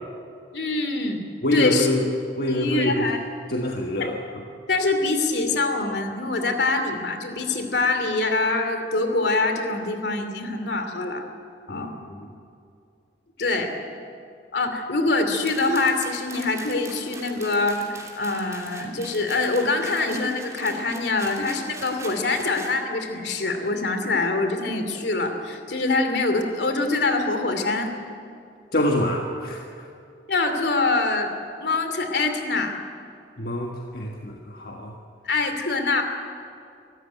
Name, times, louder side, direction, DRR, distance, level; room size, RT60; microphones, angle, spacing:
voice 1, 0.5-1.9 2.5-3.2 4.0-4.1 4.7-11.2 11.7-12.0 13.4-13.7 14.5-27.9 30.3-31.4 31.6-32.7 35.2-36.0, left 3 dB, 75° left, 6 dB, 2.7 m, -24 dB
voice 2, 1.4-2.1 2.3-3.1 3.5-4.2 11.7-12.3 13.4-13.6 28.7-29.6 33.4-34.9, left 1 dB, 60° left, 0 dB, 1.6 m, -26 dB
sound 1, 15.5-22.8, right 3 dB, 20° right, 2.8 m, -42 dB
25.0 x 14.5 x 9.3 m, 2.4 s
head